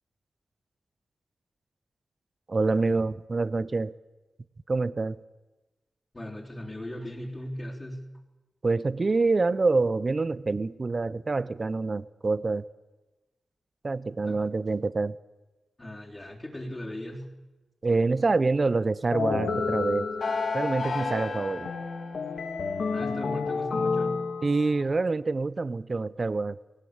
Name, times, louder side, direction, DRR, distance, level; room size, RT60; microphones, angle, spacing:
voice 1, 2.5-3.9 4.7-5.2 8.6-12.6 13.8-15.2 17.8-20.1 20.5-21.7 24.4-26.6, right 3 dB, 45° right, 18 dB, 0.7 m, -26 dB
voice 2, 6.1-8.1 14.3-14.4 15.8-17.3 22.9-24.2, left 1 dB, 25° left, -3 dB, 3.7 m, -38 dB
sound 1, 19.1-24.8, left 4 dB, 75° left, 2.8 m, -30 dB
18.0 x 18.0 x 8.8 m, 1.1 s
cardioid pair, 60°, 0 cm